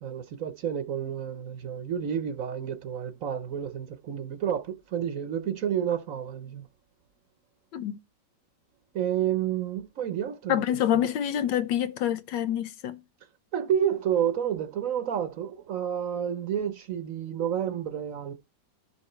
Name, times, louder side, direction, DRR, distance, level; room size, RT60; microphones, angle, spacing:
voice 1, 0.0-6.7 8.9-10.6 10.9-11.1 13.5-18.3, right 9 dB, 60° right, 1.0 m, -30 dB
voice 2, 10.5-13.0, left 10 dB, 85° left, 1.5 m, -26 dB
12.0 x 6.0 x 4.4 m
omnidirectional pair, 1.9 m